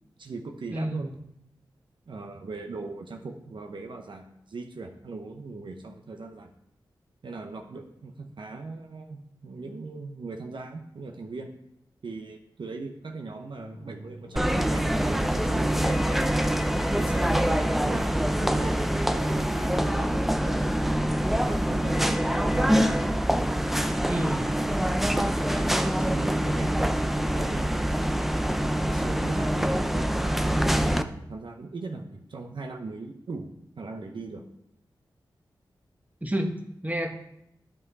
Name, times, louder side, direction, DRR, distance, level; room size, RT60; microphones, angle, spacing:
voice 1, 0.2-1.1 2.1-6.5 7.2-11.5 12.0-16.4 16.9-20.7 21.4-23.3 25.0-26.9 27.1-27.9 28.6-33.5 33.8-34.4, right 3 dB, 65° right, 3 dB, 0.9 m, -39 dB
voice 2, 0.7-1.1 24.1-24.5 36.2-36.5 36.8-37.1, right 1 dB, 20° right, 3 dB, 1.5 m, -29 dB
sound 1, 13.6-19.4, left 1 dB, 85° left, 1.4 m, -45 dB
sound 2, 14.4-31.0, equal, ahead, 0.6 m, -25 dB
11.0 x 5.4 x 4.1 m, 0.79 s
cardioid pair, 45°, 9 cm